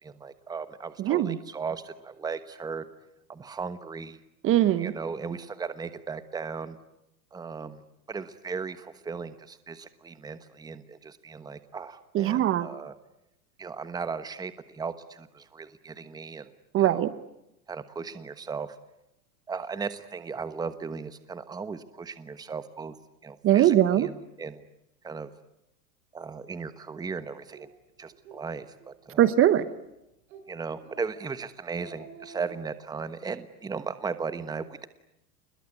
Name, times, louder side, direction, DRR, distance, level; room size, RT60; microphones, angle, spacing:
voice 1, 0.0-2.8 3.3-4.2 4.8-6.8 7.3-7.8 8.1-12.9 13.6-16.5 16.8-17.1 17.7-18.8 19.5-23.0 23.2-24.6 25.0-25.3 26.1-27.7 28.0-29.3 30.5-34.9, right 5 dB, 10° right, 12 dB, 1.2 m, -37 dB
voice 2, 1.0-1.4 4.4-4.9 12.1-12.7 16.7-17.1 23.4-24.1 29.2-29.6, right 12 dB, 30° right, 14 dB, 1.2 m, -21 dB
Speech, 27.5-27.7 28.1-28.4 28.8-28.9 29.3-29.9 30.3-30.5 30.8-31.2 31.5-32.6, right 4 dB, 65° right, 6.3 m, -49 dB
28.5 x 21.5 x 9.7 m, 0.87 s
hypercardioid pair, 125°, 45 cm